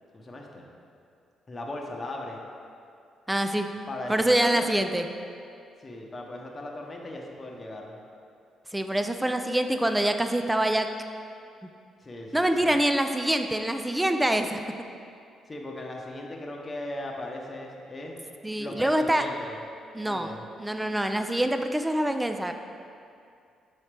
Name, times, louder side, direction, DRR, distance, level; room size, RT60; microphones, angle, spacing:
voice 1, 0.1-0.7 1.5-2.4 3.9-4.7 5.8-8.0 12.0-12.7 15.5-18.2 18.6-19.6 20.0-20.4, left 1 dB, 25° left, -1 dB, 0.8 m, -38 dB
voice 2, 3.3-3.7 4.1-5.0 8.7-10.9 12.3-14.6 18.4-19.2 19.9-20.3 20.6-22.5, right 1 dB, 10° right, 7 dB, 0.3 m, -25 dB
7.3 x 4.1 x 3.3 m, 2.4 s
cardioid pair, 90°, 0 cm